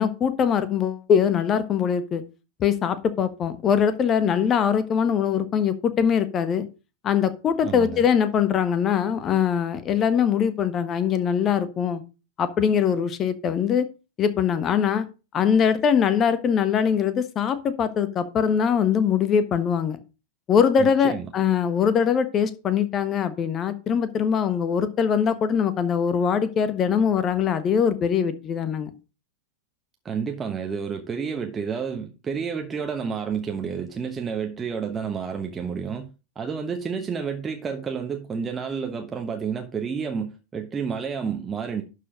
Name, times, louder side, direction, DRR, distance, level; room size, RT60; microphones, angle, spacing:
voice 1, 0.0-2.2 2.6-6.7 7.0-12.0 12.4-13.9 14.2-15.1 15.3-20.0 20.5-28.9, left 7 dB, 30° left, 1.3 m, -22 dB
voice 2, 7.6-8.0 20.8-21.3 30.0-36.1 36.3-41.8, right 6 dB, 20° right, 1.2 m, -30 dB
11.5 x 4.9 x 5.1 m
figure-of-eight pair, 90°, 0 cm